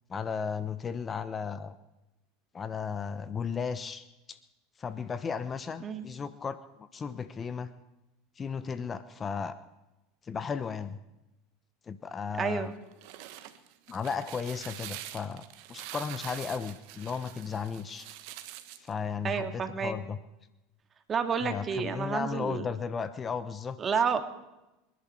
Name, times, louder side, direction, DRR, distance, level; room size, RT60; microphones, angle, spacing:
voice 1, 0.1-1.8 2.5-4.4 4.8-7.7 8.4-9.5 10.3-11.0 11.9-12.7 13.9-18.1 18.7-20.2 21.4-23.8, left 6 dB, 25° left, 13 dB, 0.9 m, -35 dB
voice 2, 12.4-12.7 19.2-19.9 21.1-22.6 23.8-24.2, right 6 dB, 30° right, 7 dB, 2.1 m, -30 dB
sound 1, 12.8-18.9, right 13 dB, 65° right, 1.3 m, -45 dB
27.5 x 11.0 x 4.5 m, 0.98 s
hypercardioid pair, 95°, 0 cm